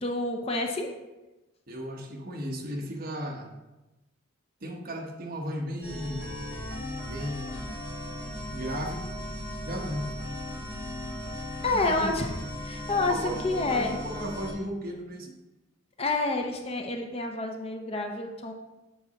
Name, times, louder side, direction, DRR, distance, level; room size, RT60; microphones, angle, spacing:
voice 1, 0.0-0.9 11.6-12.4 12.6-14.0 16.0-18.5, left 2 dB, 30° left, 3 dB, 0.6 m, -28 dB
voice 2, 1.7-3.5 4.6-6.4 7.0-7.7 8.5-9.1 9.6-10.1 11.7-12.2 12.9-15.3, equal, 45° right, 1 dB, 1.1 m, -35 dB
sound 1, 5.8-14.5, left 1 dB, 45° left, 2.1 m, -37 dB
8.0 x 4.8 x 4.1 m, 1.0 s
head